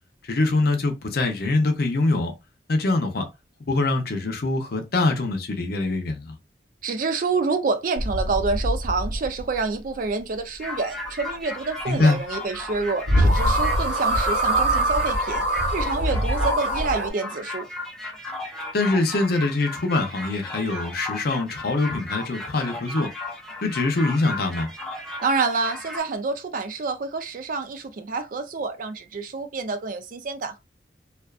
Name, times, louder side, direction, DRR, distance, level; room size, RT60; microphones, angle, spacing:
voice 1, 0.2-2.3 2.7-3.3 3.7-6.4 11.9-12.2 18.7-23.1 23.6-24.7, left 2 dB, 60° left, 0.6 m, -23 dB
voice 2, 6.8-15.4 15.7-17.7 25.2-30.6, right 4 dB, 50° right, 0.4 m, -27 dB
sound 1, 8.0-9.6 12.7-12.8 13.1-17.1, right 1 dB, 75° right, 1.0 m, -23 dB
sound 2, 10.6-26.0, left 2 dB, 5° left, 0.5 m, -35 dB
2.4 x 2.3 x 2.3 m
head